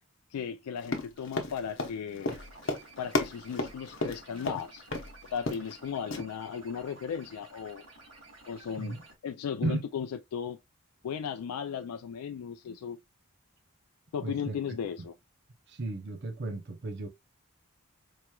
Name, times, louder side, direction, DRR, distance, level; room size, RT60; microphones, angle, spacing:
voice 1, 0.3-2.4 3.0-4.8 5.3-7.8 8.5-9.0 9.2-10.6 11.0-13.0 14.1-15.1, left 7 dB, 90° left, 0.3 m, -36 dB
Run, 0.8-4.6 4.9-5.1 5.4-5.8 6.1-6.2, left 2 dB, 55° left, 0.8 m, -33 dB
sound 1, 1.2-9.1, right 2 dB, 80° right, 2.7 m, -54 dB
voice 2, 14.2-14.6 15.7-17.1, right 2 dB, 50° right, 0.6 m, -34 dB
4.6 x 3.0 x 2.3 m
head